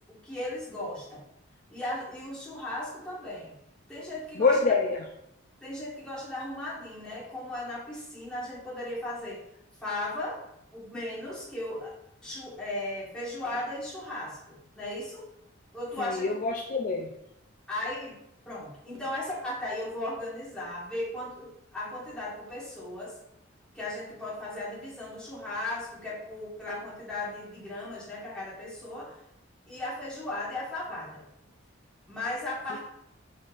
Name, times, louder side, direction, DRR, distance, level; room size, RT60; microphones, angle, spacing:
voice 1, 0.1-1.2 1.7-3.5 3.9-4.6 5.6-9.4 9.8-10.4 10.7-11.9 12.2-15.3 15.7-16.4 17.7-18.1 18.4-23.1 23.7-29.2 29.7-31.2 32.1-32.9, left 1 dB, 5° left, -8 dB, 1.5 m, -36 dB
voice 2, 4.4-5.0 16.0-17.1, left 4 dB, 40° left, 1 dB, 0.3 m, -26 dB
4.7 x 4.2 x 2.4 m, 0.81 s
head